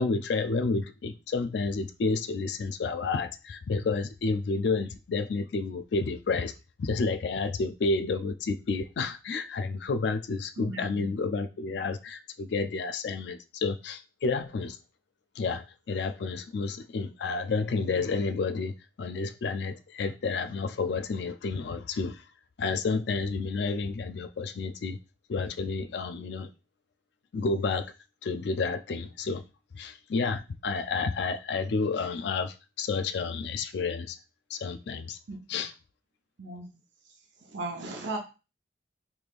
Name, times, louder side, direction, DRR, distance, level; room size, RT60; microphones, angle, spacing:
voice 1, 0.0-6.5 6.8-14.8 15.4-22.2 22.6-25.0 25.3-26.5 27.3-27.9 28.2-29.4 29.7-34.2 34.5-35.2 35.5-35.7, left 4 dB, 70° left, 0.4 m, -30 dB
voice 2, 10.6-11.1 35.3-35.4 36.4-36.7 37.5-38.2, right 2 dB, 85° right, 0.8 m, -36 dB
3.5 x 3.1 x 2.4 m
head